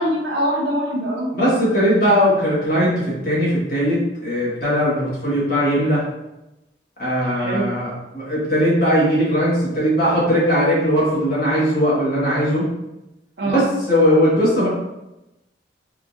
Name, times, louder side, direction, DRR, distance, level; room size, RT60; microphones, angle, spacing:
voice 1, 0.0-1.4 7.3-7.7 13.4-13.7, right 1 dB, 65° right, -2 dB, 0.7 m, -23 dB
voice 2, 1.3-6.0 7.0-12.7 13.5-14.7, equal, 50° left, -7 dB, 1.2 m, -19 dB
3.6 x 2.4 x 2.5 m, 0.95 s
head